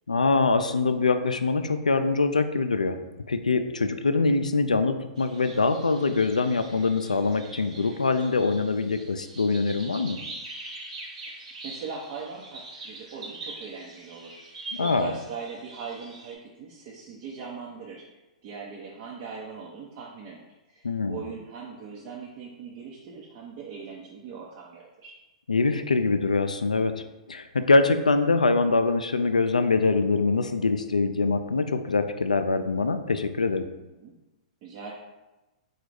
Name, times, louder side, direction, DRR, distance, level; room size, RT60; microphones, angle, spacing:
voice 1, 0.1-3.0 3.3-10.2 14.8-15.1 20.8-21.2 25.5-33.7, left 3 dB, 90° left, 9 dB, 0.4 m, -24 dB
sound 1, 5.2-16.3, right 2 dB, 65° right, 1.2 m, -43 dB
voice 2, 11.3-18.0 18.4-25.1 34.0-34.1 34.6-34.9, right 5 dB, 45° right, -4 dB, 0.8 m, -40 dB
4.0 x 2.4 x 4.7 m, 1.1 s
hypercardioid pair, 115°, 4 cm